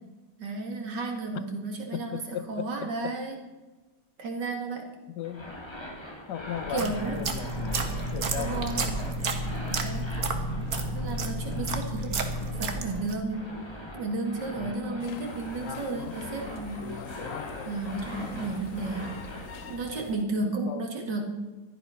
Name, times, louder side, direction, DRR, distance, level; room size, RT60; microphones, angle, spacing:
voice 1, 0.4-3.4 4.2-4.9 6.7-7.2 8.4-8.8 9.8-10.1 10.9-13.5 13.9-16.8 17.6-19.1 19.7-21.4, right 3 dB, 85° right, 2 dB, 2.8 m, -33 dB
voice 2, 1.9-3.2 5.1-5.5 6.3-8.9 11.5-11.9 14.6-14.9 20.4-20.9, left 10 dB, 80° left, 13 dB, 1.4 m, -37 dB
sound 1, 5.2-19.7, left 1 dB, 15° left, 2.4 m, -42 dB
sound 2, 6.6-13.3, right 2 dB, 60° right, 1.8 m, -31 dB
sound 3, 15.0-20.2, left 6 dB, 55° left, 1.2 m, -41 dB
14.5 x 11.5 x 5.8 m, 1.2 s
omnidirectional pair, 1.8 m